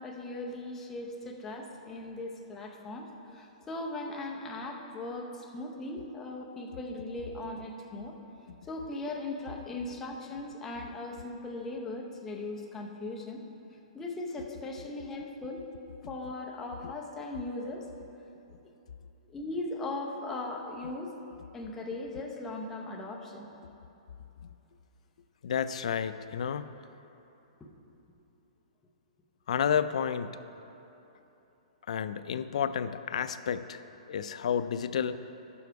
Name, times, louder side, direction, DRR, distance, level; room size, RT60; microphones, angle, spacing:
voice 1, 0.0-8.1 8.6-13.4 13.9-15.6 16.1-17.9 19.2-21.1 21.5-23.5 27.6-27.7, left 2 dB, 10° left, -1 dB, 0.7 m, -38 dB
voice 2, 25.4-26.7 29.5-30.4 31.9-33.8 34.1-35.2, left 8 dB, 65° left, 12 dB, 0.4 m, -31 dB
11.0 x 7.0 x 4.7 m, 3.0 s
hypercardioid pair, 170°, 4 cm